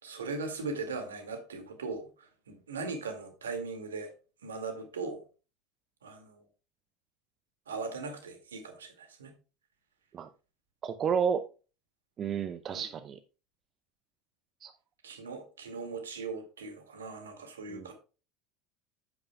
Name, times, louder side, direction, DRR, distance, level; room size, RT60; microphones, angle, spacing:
voice 1, 0.0-4.1 4.4-5.2 6.0-6.4 7.7-9.3 12.7-12.9 15.0-17.9, right 4 dB, 75° right, 2.2 m, -39 dB
voice 2, 10.8-11.4 12.2-13.2 14.6-14.7 17.7-17.9, right 7 dB, 35° right, 0.7 m, -31 dB
10.5 x 8.8 x 2.3 m
figure-of-eight pair, 70°, 0 cm